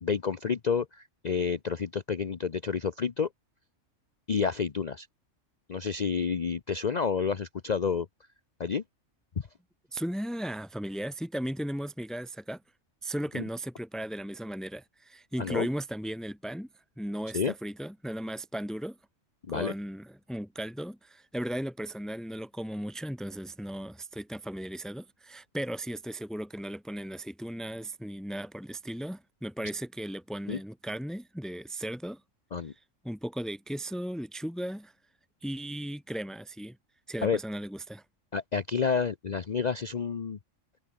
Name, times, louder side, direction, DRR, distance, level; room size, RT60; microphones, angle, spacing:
voice 1, 0.0-3.3 4.3-5.1 5.7-8.1 8.6-8.8 13.3-13.4 15.4-15.7 17.3-17.5 19.5-19.7 30.5-30.6 32.5-32.7 37.2-37.4 38.3-40.4, left 6 dB, 40° left, 0.8 m, -29 dB
voice 2, 9.9-12.6 13.0-16.7 17.0-19.0 19.5-32.2 32.7-32.8 33.0-34.9 35.4-36.8 37.1-38.0, right 1 dB, ahead, 2.5 m, -36 dB
omnidirectional pair, 1.3 m